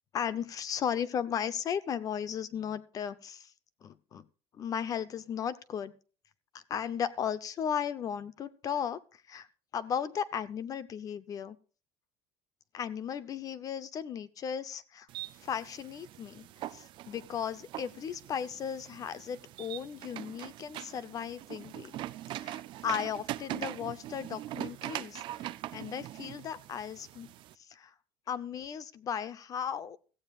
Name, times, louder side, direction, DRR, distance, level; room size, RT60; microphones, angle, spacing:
voice 1, 0.1-3.5 3.8-4.2 4.5-5.9 6.7-9.0 9.3-9.5 9.7-11.6 12.7-15.1 15.4-16.5 16.7-22.0 22.3-27.3 27.7-27.9 28.3-30.0, left 8 dB, 35° left, 15 dB, 0.7 m, -36 dB
sound 1, 15.1-27.5, right 14 dB, 50° right, 0.5 m, -42 dB
16.5 x 15.0 x 2.4 m, 0.37 s
cardioid pair, 155°, 11 cm